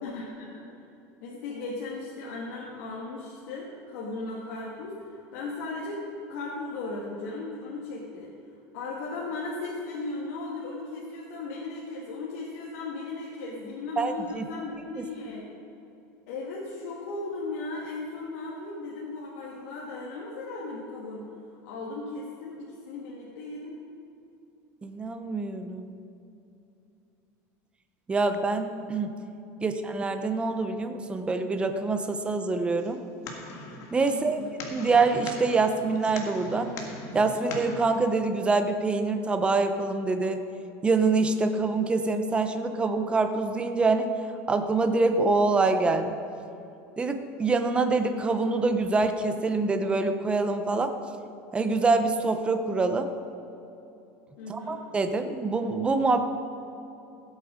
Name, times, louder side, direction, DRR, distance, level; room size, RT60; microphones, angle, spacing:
voice 1, 0.0-0.6 1.2-6.0 6.3-8.3 8.7-15.5 16.3-21.3 21.6-23.8 34.1-34.6 54.4-54.8, left 3 dB, 85° left, -4 dB, 1.9 m, -37 dB
voice 2, 14.0-14.5 15.0-15.1 24.8-26.0 28.1-29.1 29.6-33.0 33.9-34.4 34.7-36.7 37.1-40.4 40.8-44.1 44.5-46.2 47.0-50.9 51.5-53.1 54.5-56.3, right 3 dB, 15° right, 7 dB, 0.7 m, -25 dB
sound 1, 32.8-37.8, left 3 dB, 45° left, 1.8 m, -41 dB
15.5 x 8.4 x 5.0 m, 2.8 s
cardioid pair, 150°, 7 cm